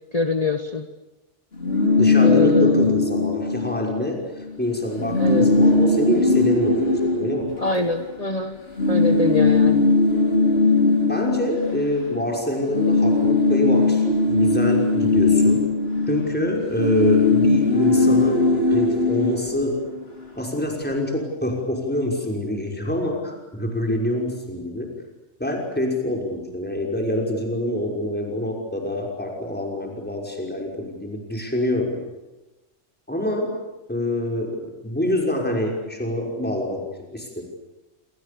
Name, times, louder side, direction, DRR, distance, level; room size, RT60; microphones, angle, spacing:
voice 1, 0.1-0.9 2.2-2.9 5.2-5.5 7.6-8.6 8.9-9.9, left 3 dB, 30° left, 6 dB, 1.6 m, -24 dB
sound 1, 1.5-4.1 4.4-4.6 4.8-8.2 8.8-12.3 12.6-20.2, left 3 dB, 55° left, 5.2 m, -19 dB
voice 2, 2.0-7.5 11.1-15.6 16.1-19.8 20.3-24.9 25.4-32.0 33.1-33.5 33.9-37.4, left 1 dB, 10° left, 0 dB, 5.9 m, -26 dB
29.0 x 28.0 x 7.1 m, 1.1 s
omnidirectional pair, 1.3 m